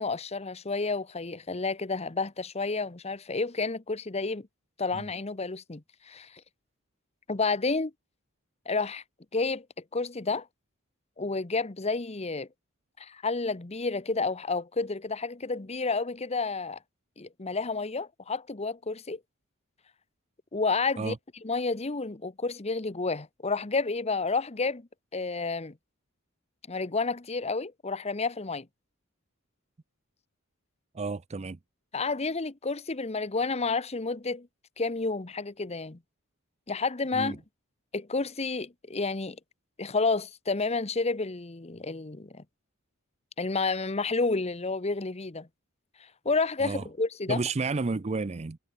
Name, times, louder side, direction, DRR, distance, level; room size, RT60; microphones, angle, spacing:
voice 1, 0.0-4.5 4.8-6.4 7.3-7.9 8.7-9.0 9.3-9.6 9.9-10.5 11.2-12.5 13.0-16.8 17.2-19.2 20.5-21.1 21.4-25.7 26.7-28.7 31.9-34.5 34.8-36.0 36.7-37.4 37.9-39.4 39.8-42.4 43.4-45.5 46.2-47.4, left 3 dB, 30° left, 0.9 m, -30 dB
voice 2, 30.9-31.6 37.1-37.4 46.6-46.9 47.3-48.6, right 3 dB, 30° right, 0.5 m, -31 dB
head